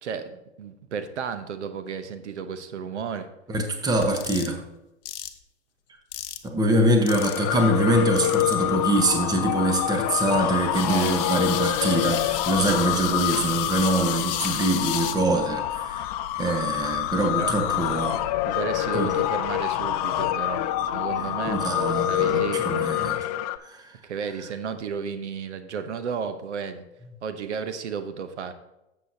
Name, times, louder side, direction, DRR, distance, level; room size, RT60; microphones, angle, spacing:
voice 1, 0.0-3.3 10.8-11.2 17.4-17.5 18.5-20.7 20.9-21.6 22.1-22.9 24.0-26.9 27.2-28.5, right 6 dB, 75° right, 10 dB, 1.0 m, -33 dB
voice 2, 3.5-4.6 6.4-16.1 16.4-18.2 18.9-19.1 21.5-23.2 23.6-23.9, right 1 dB, 10° right, 4 dB, 1.0 m, -24 dB
sound 1, 4.0-4.5 5.1-5.3 6.1-6.5 7.1-7.5 8.2-8.5 9.1-9.2 10.7-15.2, left 12 dB, 50° left, 0.9 m, -32 dB
sound 2, 7.1-23.6, left 13 dB, 35° left, 0.4 m, -27 dB
11.5 x 7.8 x 2.8 m, 0.94 s
hypercardioid pair, 120°, 35 cm